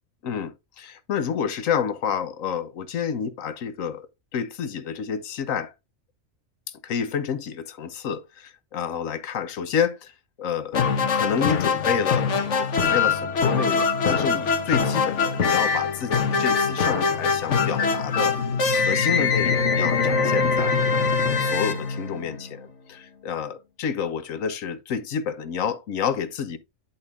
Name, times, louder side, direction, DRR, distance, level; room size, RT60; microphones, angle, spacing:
voice 1, 0.2-4.1 4.3-5.7 6.8-10.1 10.4-10.8 11.1-18.4 18.7-20.8 21.4-26.6, left 7 dB, 80° left, 1.3 m, -29 dB
sound 1, 10.7-22.6, left 5 dB, 65° left, 1.4 m, -23 dB
10.5 x 4.4 x 3.5 m
omnidirectional pair, 1.3 m